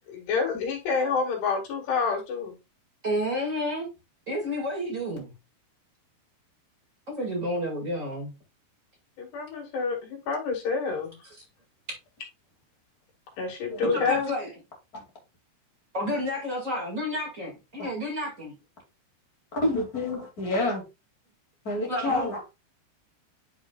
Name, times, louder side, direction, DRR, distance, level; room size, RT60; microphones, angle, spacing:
voice 1, 0.1-2.6 9.2-11.1 13.4-14.3, left 5 dB, 90° left, 4.1 m, -28 dB
voice 2, 3.0-3.9 4.3-5.3 7.1-8.3 11.9-12.0 13.8-14.5 15.9-18.5 21.9-22.5, equal, 30° right, 1.4 m, -30 dB
voice 3, 13.7-14.1 14.9-15.0 17.8-17.9 19.5-20.8 21.6-22.4, left 2 dB, 30° left, 1.9 m, -28 dB
9.9 x 4.9 x 2.3 m
omnidirectional pair, 4.6 m